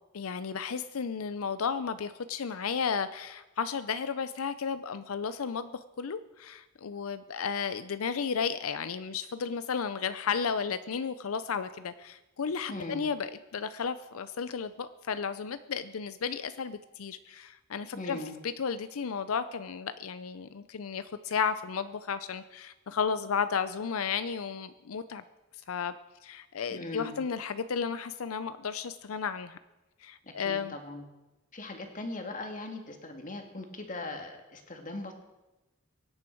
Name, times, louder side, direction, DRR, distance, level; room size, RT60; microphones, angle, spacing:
voice 1, 0.1-5.7 6.0-25.2 25.7-25.9 26.2-29.6 30.0-30.8, left 6 dB, 90° left, 12 dB, 0.5 m, -33 dB
voice 2, 12.7-13.0 17.9-18.4 26.7-27.2 30.2-31.0 31.5-35.1, left 2 dB, 40° left, 4 dB, 2.0 m, -39 dB
23.0 x 9.7 x 4.6 m, 1.1 s
head